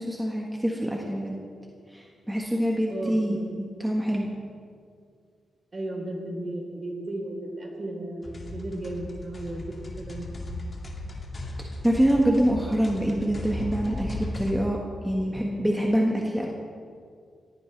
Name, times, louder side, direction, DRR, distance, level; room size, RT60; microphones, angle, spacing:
voice 1, 0.0-1.4 1.9-4.3 11.8-16.5, equal, 5° right, -1 dB, 1.6 m, -25 dB
voice 2, 2.9-3.5 5.7-9.6 10.0-10.3, right 1 dB, 40° right, 0 dB, 4.0 m, -34 dB
sound 1, 8.2-14.5, left 1 dB, 40° left, 2.5 m, -36 dB
18.5 x 15.5 x 3.5 m, 2.2 s
cardioid pair, 80°, 0 cm